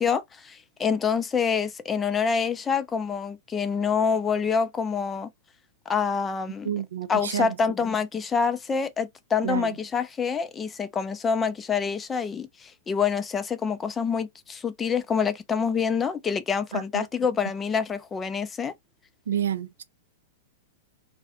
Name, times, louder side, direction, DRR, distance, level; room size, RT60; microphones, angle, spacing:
voice 1, 0.0-5.3 5.9-6.7 7.1-18.7, left 6 dB, 20° left, 0.4 m, -26 dB
voice 2, 6.7-7.5 9.4-9.7 16.7-17.1 19.3-19.8, right 9 dB, 75° right, 0.3 m, -29 dB
2.3 x 2.0 x 2.8 m
hypercardioid pair, 105°, 0 cm